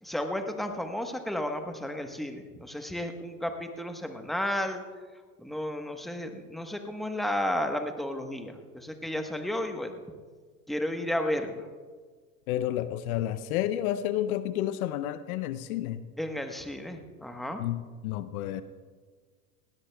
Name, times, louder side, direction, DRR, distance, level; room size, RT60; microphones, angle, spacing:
voice 1, 0.0-4.8 5.4-10.0 10.7-11.7 16.2-17.6, left 1 dB, ahead, 5 dB, 1.1 m, -33 dB
voice 2, 12.5-16.1 17.6-18.6, left 12 dB, 70° left, 14 dB, 0.7 m, -30 dB
19.0 x 17.0 x 2.3 m, 1.5 s
hypercardioid pair, 90°, 45 cm